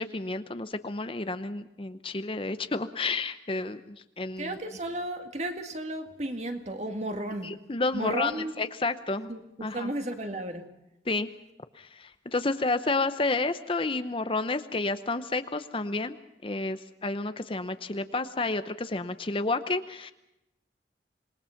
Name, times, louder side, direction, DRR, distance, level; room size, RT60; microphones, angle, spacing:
voice 1, 0.0-4.6 7.4-8.3 8.6-9.3 9.6-9.9 11.1-11.3 11.8-16.2 16.4-20.1, left 3 dB, 30° left, 11 dB, 0.7 m, -30 dB
voice 2, 4.4-7.5 7.9-8.7 9.3-10.7, right 1 dB, 40° right, 6 dB, 2.0 m, -34 dB
27.0 x 20.5 x 5.8 m, 0.89 s
head